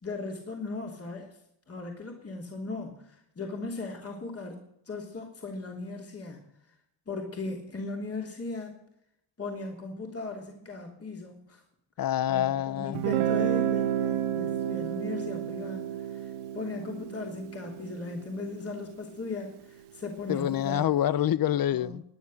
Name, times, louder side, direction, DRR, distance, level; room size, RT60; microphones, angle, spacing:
voice 1, 0.0-1.4 1.7-6.4 7.1-8.8 9.4-11.6 12.3-20.9 21.7-22.0, left 3 dB, 30° left, 3.3 m, -38 dB
voice 2, 12.0-13.0 20.3-22.0, left 11 dB, 45° left, 0.7 m, -26 dB
Guitar, 12.9-18.7, right 10 dB, 85° right, 1.8 m, -31 dB
18.5 x 9.8 x 6.5 m
supercardioid pair, 75°, 48 cm